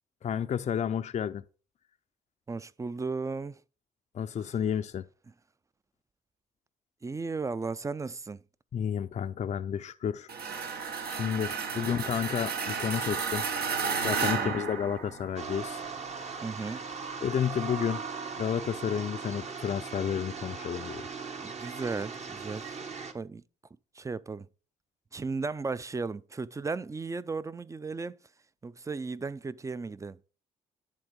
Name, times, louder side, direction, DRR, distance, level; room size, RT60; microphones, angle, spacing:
voice 1, 0.2-1.4 4.1-5.0 8.7-10.3 11.1-13.4 14.0-15.8 17.2-18.0 18.4-21.1, left 8 dB, 45° left, 0.5 m, -31 dB
voice 2, 2.5-3.6 4.4-4.5 7.0-8.4 11.8-12.1 14.2-14.6 16.4-16.9 21.4-22.8 23.1-23.4 23.9-24.5 25.1-28.2 28.6-30.2, right 4 dB, 20° right, 0.4 m, -35 dB
sound 1, 10.3-15.5, right 5 dB, 70° right, 1.2 m, -32 dB
sound 2, 15.4-23.1, right 5 dB, 40° right, 1.1 m, -39 dB
10.5 x 3.7 x 5.1 m
supercardioid pair, 65°, 17 cm